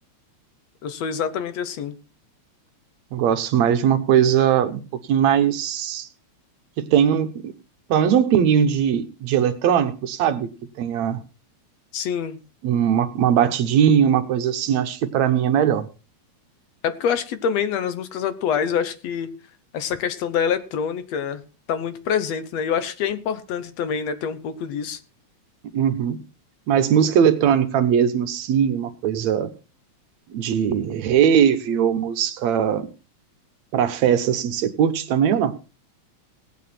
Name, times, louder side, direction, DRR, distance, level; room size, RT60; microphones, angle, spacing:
voice 1, 0.8-2.0 11.9-12.4 16.8-19.3 19.7-21.4 21.7-25.0, left 7 dB, 70° left, 12 dB, 2.1 m, -26 dB
voice 2, 3.1-4.8 5.1-6.1 6.8-7.5 7.9-10.5 10.8-11.2 12.6-15.9 25.7-26.2 26.7-29.5 30.3-32.9 33.7-35.6, right 8 dB, 70° right, 10 dB, 2.3 m, -20 dB
18.0 x 9.1 x 4.3 m, 0.32 s
omnidirectional pair, 3.3 m